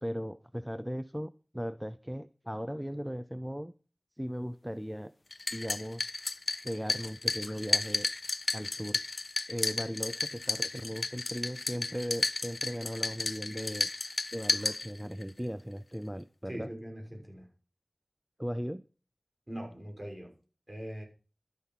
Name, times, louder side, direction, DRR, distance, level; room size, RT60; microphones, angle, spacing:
voice 1, 0.0-3.7 4.2-5.1 5.5-6.1 6.6-8.1 8.5-9.0 9.5-13.9 14.3-16.7 18.4-18.8, equal, 5° right, 0.6 m, -37 dB
sound 1, 5.3-15.3, left 3 dB, 75° left, 0.6 m, -33 dB
voice 2, 16.5-17.5 19.5-20.3 20.7-21.0, equal, 30° right, 6.0 m, -41 dB
12.5 x 9.7 x 5.7 m
wide cardioid pair, 60°, 0 cm